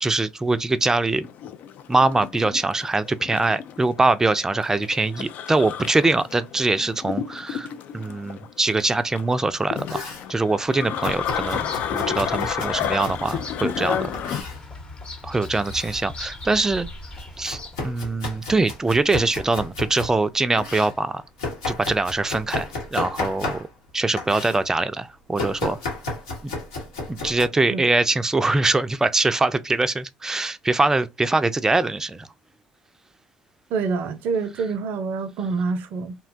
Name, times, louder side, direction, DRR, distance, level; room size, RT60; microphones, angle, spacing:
voice 1, 0.0-1.3 1.9-7.7 7.9-10.0 10.3-14.1 15.2-16.9 17.4-21.2 21.7-23.7 23.9-25.8 26.4-26.5 27.1-32.3, right 2 dB, 15° right, 0.4 m, -23 dB
sound 1, 1.2-14.4, left 9 dB, 60° left, 0.3 m, -31 dB
Domestic sounds home sounds, 9.5-10.3 11.0-13.5 14.1-14.6 15.4-16.0 16.4-20.2 20.6-23.9 24.2-24.6 25.4-27.5, left 2 dB, 90° left, 1.1 m, -33 dB
Bird vocalization bird call bird song, 11.2-18.0, left 2 dB, 30° left, 0.8 m, -39 dB
voice 2, 33.7-36.2, right 4 dB, 65° right, 0.5 m, -26 dB
2.7 x 2.2 x 2.5 m
hypercardioid pair, 65°, 3 cm